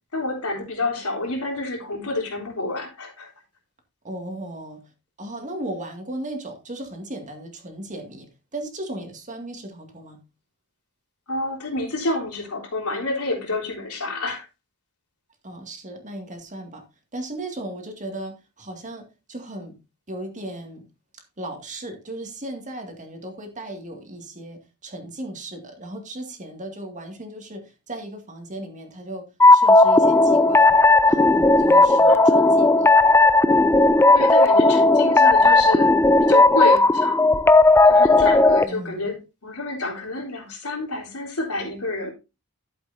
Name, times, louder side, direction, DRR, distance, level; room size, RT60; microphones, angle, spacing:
voice 1, 0.1-3.3 11.3-14.5 32.1-32.7 34.1-35.9 36.3-37.2 37.8-42.1, left 2 dB, 90° left, 3.6 m, -29 dB
voice 2, 4.0-4.8 5.2-8.3 8.5-10.2 15.4-16.8 17.1-19.8 20.1-20.8 21.4-30.8 31.1-32.9 38.7-39.1, right 1 dB, 35° right, 2.1 m, -36 dB
sound 1, 29.4-38.6, left 2 dB, 10° left, 0.4 m, -15 dB
12.0 x 8.0 x 2.7 m
head